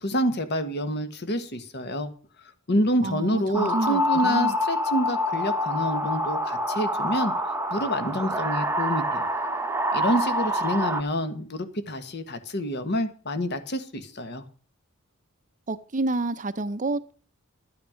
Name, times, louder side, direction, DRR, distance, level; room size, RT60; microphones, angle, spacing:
voice 1, 0.0-2.1 2.7-7.3 7.7-9.3 9.9-14.4, equal, 50° left, 1.5 m, -27 dB
voice 2, 3.0-4.6 15.7-17.1, right 2 dB, 35° right, 0.6 m, -29 dB
sound 1, 3.5-11.0, equal, 10° right, 0.9 m, -26 dB
12.0 x 9.3 x 5.0 m
head